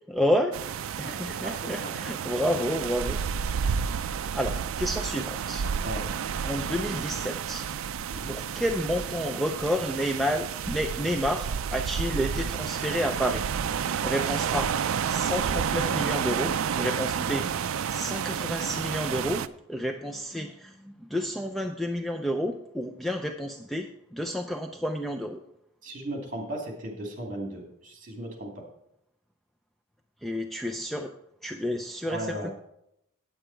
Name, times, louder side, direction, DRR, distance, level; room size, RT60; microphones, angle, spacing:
voice 1, 0.1-0.5 1.0-3.2 4.3-5.7 6.4-7.7 8.3-13.4 14.0-14.7 15.1-19.4 19.7-25.4 30.2-31.1 31.4-32.5, equal, ahead, 5 dB, 0.4 m, -30 dB
sound 1, 0.5-19.5, right 7 dB, 70° right, 0.4 m, -30 dB
voice 2, 1.0-1.9 5.8-6.0 8.1-8.3 25.8-28.6 32.0-32.5, right 1 dB, 40° right, 1 dB, 2.5 m, -36 dB
8.8 x 8.7 x 4.5 m, 0.79 s
head